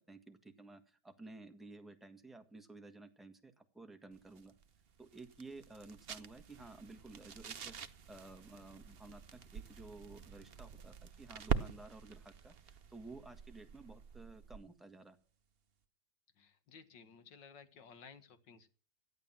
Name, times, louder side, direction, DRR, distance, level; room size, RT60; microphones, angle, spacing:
voice 1, 0.0-4.5 5.0-15.2, right 2 dB, ahead, 7 dB, 1.3 m, -54 dB
sound 1, 4.1-14.8, right 7 dB, 50° right, 0.7 m, -45 dB
voice 2, 16.4-18.7, left 6 dB, 65° left, 10 dB, 2.1 m, -57 dB
14.0 x 11.0 x 7.3 m, 0.42 s
omnidirectional pair, 2.2 m